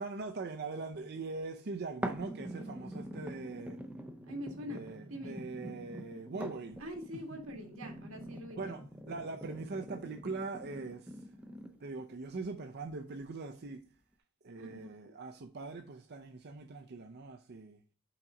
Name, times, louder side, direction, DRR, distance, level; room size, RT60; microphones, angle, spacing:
voice 1, 0.0-3.8 4.7-6.8 7.3-7.4 8.5-11.1 11.8-13.8 14.4-17.8, right 3 dB, 50° right, 0.6 m, -42 dB
sound 1, 2.0-12.0 12.6-12.7, right 1 dB, 5° right, 0.5 m, -45 dB
voice 2, 4.3-5.4 6.8-8.8 14.6-15.2, equal, 90° right, 1.8 m, -44 dB
5.9 x 4.0 x 4.8 m
head